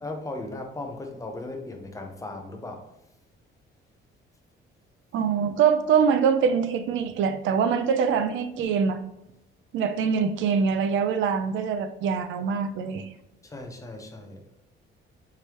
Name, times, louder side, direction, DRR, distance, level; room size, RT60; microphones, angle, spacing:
voice 1, 0.0-2.9 13.4-14.5, left 2 dB, 15° left, 3 dB, 0.6 m, -37 dB
voice 2, 5.1-9.0 9.7-13.1, right 6 dB, 70° right, 10 dB, 0.5 m, -24 dB
4.8 x 3.2 x 2.9 m, 0.89 s
cardioid pair, 145°, 21 cm